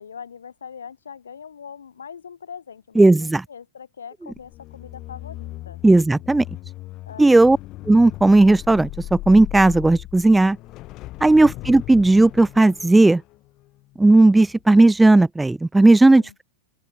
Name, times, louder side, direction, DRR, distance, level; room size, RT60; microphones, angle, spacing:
voice 1, 0.0-5.8 7.1-7.6 11.4-11.6 16.2-16.4, left 7 dB, 70° left, 4.0 m, -41 dB
voice 2, 3.0-3.4 5.8-6.4 7.2-7.6 7.9-10.6 11.2-13.2 14.0-16.4, right 2 dB, 5° right, 1.0 m, -15 dB
sound 1, 4.3-14.6 15.0-15.2, left 17 dB, 35° left, 2.7 m, -38 dB
open air
figure-of-eight pair, 90°, 0 cm